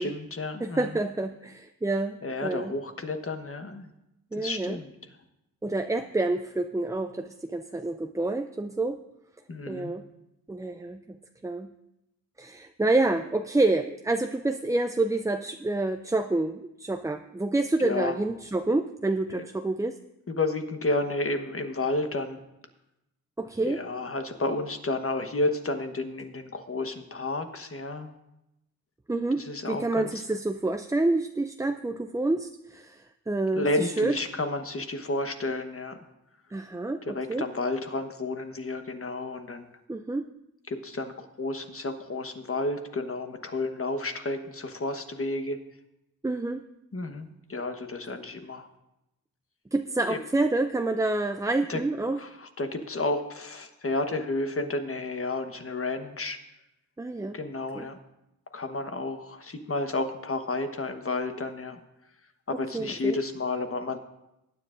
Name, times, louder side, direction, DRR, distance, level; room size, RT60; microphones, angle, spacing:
voice 1, 0.0-0.9 2.2-3.9 4.4-4.9 9.5-9.9 17.8-18.1 19.3-19.4 20.3-22.4 23.7-28.1 29.4-30.1 33.5-36.0 37.1-39.7 40.7-41.1 41.4-45.6 46.9-48.7 50.1-50.2 51.7-51.8 52.2-56.4 57.3-58.0 58.5-61.8 62.6-64.0, left 2 dB, 40° left, 6 dB, 1.2 m, -31 dB
voice 2, 0.6-2.8 4.3-4.8 5.6-9.0 9.7-10.0 10.5-11.2 11.4-11.7 12.4-20.0 23.4-23.8 29.1-29.4 29.7-34.2 36.5-37.5 39.9-40.2 46.2-46.6 49.7-52.2 57.0-57.4 57.7-57.9 62.5-63.2, right 2 dB, 10° right, 7 dB, 0.4 m, -28 dB
19.5 x 9.7 x 2.6 m, 0.89 s
wide cardioid pair, 80°, 35 cm